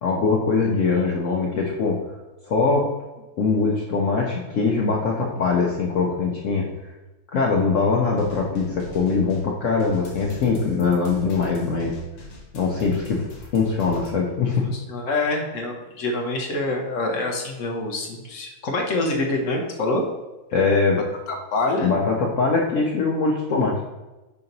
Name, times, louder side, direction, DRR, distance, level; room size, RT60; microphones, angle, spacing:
voice 1, 0.0-2.0 2.5-2.9 3.4-6.7 7.3-12.0 12.5-14.7 20.5-21.0 21.8-23.9, left 4 dB, 90° left, -1 dB, 0.6 m, -22 dB
sound 1, 8.0-14.1, left 1 dB, 75° left, 1.9 m, -41 dB
voice 2, 14.6-20.1 21.3-21.9, left 2 dB, 55° left, 1 dB, 0.9 m, -26 dB
6.7 x 2.9 x 5.2 m, 1.1 s
omnidirectional pair, 2.2 m